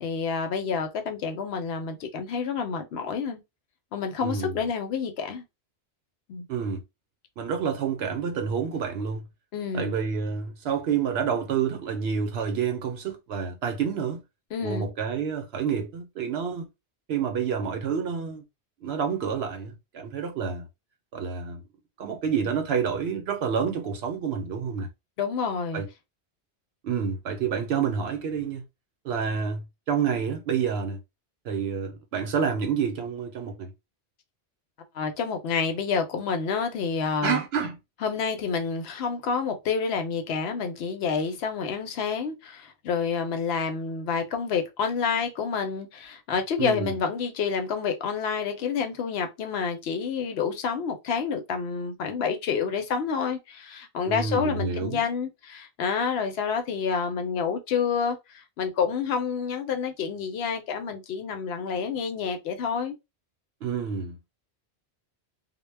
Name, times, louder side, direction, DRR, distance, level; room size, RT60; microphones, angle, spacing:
voice 1, 0.0-3.4 3.9-5.4 6.3-6.4 9.5-9.9 14.5-14.9 25.2-25.8 34.9-37.4 38.0-63.0, left 6 dB, 75° left, 0.8 m, -28 dB
voice 2, 4.2-4.6 6.5-6.8 7.4-9.2 9.7-14.2 14.6-16.7 17.1-18.4 18.8-20.7 21.1-21.6 22.0-24.9 25.7-25.9 26.8-28.6 29.0-31.0 31.4-33.7 37.2-37.8 46.6-46.9 54.1-55.0 63.6-64.2, right 6 dB, 70° right, 0.8 m, -28 dB
2.1 x 2.0 x 3.2 m
omnidirectional pair, 1.1 m